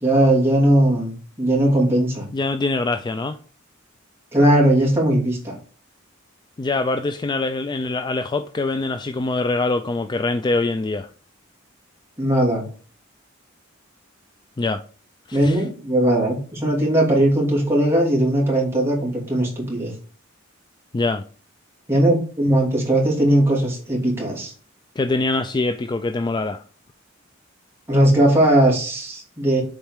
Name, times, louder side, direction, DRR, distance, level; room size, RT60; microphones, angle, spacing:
voice 1, 0.0-2.3 4.3-5.5 12.2-12.6 15.3-19.9 21.9-24.5 27.9-29.6, right 1 dB, 10° right, 2.6 m, -18 dB
voice 2, 2.3-3.4 6.6-11.1 14.6-14.8 15.3-15.6 20.9-21.2 25.0-26.6, left 3 dB, 20° left, 0.3 m, -24 dB
7.1 x 4.4 x 3.6 m
head